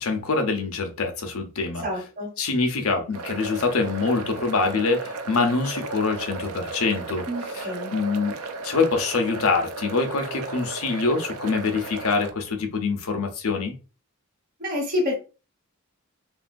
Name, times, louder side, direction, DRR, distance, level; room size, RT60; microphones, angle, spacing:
voice 1, 0.0-1.8 2.4-7.2 7.5-8.4 8.6-13.7, left 4 dB, 90° left, 0.8 m, -25 dB
voice 2, 1.8-2.3 7.3-7.9 14.6-15.2, left 1 dB, 45° right, 1.0 m, -28 dB
sound 1, 3.1-12.3, right 3 dB, 85° right, 0.5 m, -35 dB
3.0 x 2.7 x 2.6 m
head